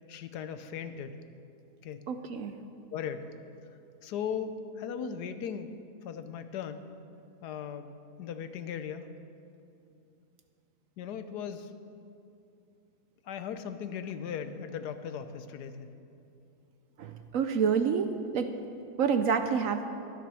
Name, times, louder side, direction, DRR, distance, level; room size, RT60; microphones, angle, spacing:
voice 1, 0.1-1.2 1.8-2.0 2.9-3.3 4.0-5.7 6.0-6.8 7.4-7.9 8.2-9.1 11.0-11.7 13.3-15.9, left 7 dB, 80° left, 10 dB, 1.3 m, -37 dB
voice 2, 2.1-2.5 17.0-18.5 19.0-19.9, right 6 dB, 65° right, 8 dB, 0.9 m, -28 dB
12.5 x 11.0 x 6.2 m, 2.6 s
omnidirectional pair, 1.7 m